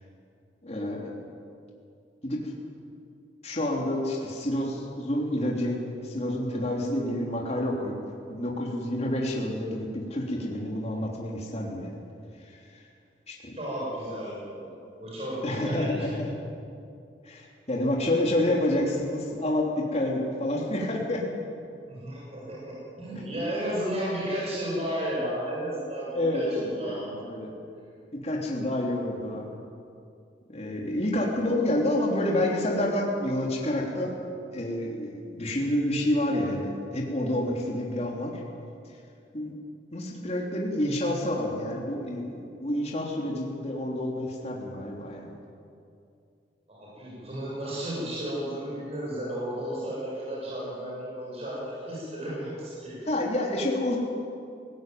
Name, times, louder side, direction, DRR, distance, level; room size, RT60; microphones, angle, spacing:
voice 1, 0.6-1.3 2.2-2.5 3.4-8.0 8.3-12.0 13.3-13.6 15.4-16.3 17.2-21.2 26.1-27.5 28.1-29.5 30.5-34.1 34.5-38.4 39.3-39.5 39.9-42.3 42.6-45.3 53.1-54.0, left 1 dB, 35° left, -2 dB, 3.3 m, -28 dB
voice 2, 13.5-16.1 21.9-27.1 46.7-53.0, equal, 35° right, -6 dB, 7.1 m, -33 dB
20.0 x 17.0 x 9.3 m, 2.5 s
head